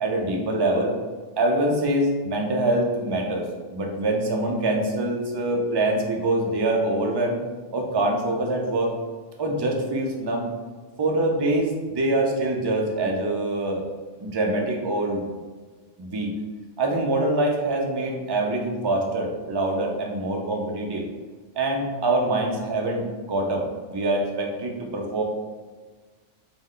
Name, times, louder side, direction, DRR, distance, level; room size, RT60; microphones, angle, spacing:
voice 1, 0.0-0.9 1.4-3.5 3.7-7.4 7.7-8.9 9.4-10.5 11.0-13.9 14.2-15.3 16.0-16.3 16.8-21.0 21.6-23.0 23.3-25.2, right 2 dB, 35° right, 1 dB, 0.4 m, -24 dB
5.2 x 2.1 x 3.7 m, 1.4 s
omnidirectional pair, 1.2 m